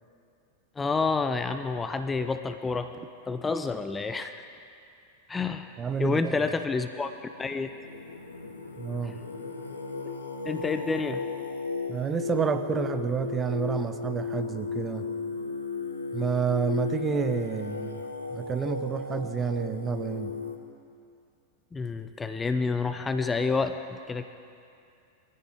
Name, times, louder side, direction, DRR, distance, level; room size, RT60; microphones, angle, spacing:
voice 1, 0.8-2.9 3.3-4.5 5.3-5.7 6.0-7.7 9.0-9.2 10.4-11.3 21.7-24.2, left 4 dB, 15° left, 9 dB, 0.6 m, -29 dB
voice 2, 5.8-6.4 8.8-9.1 11.9-15.1 16.1-18.0 18.3-20.3, right 6 dB, 20° right, 9 dB, 0.8 m, -29 dB
Singing, 6.7-20.6, left 4 dB, 75° left, 1.3 m, -35 dB
23.0 x 15.0 x 3.6 m, 2.5 s
figure-of-eight pair, 90°, 0 cm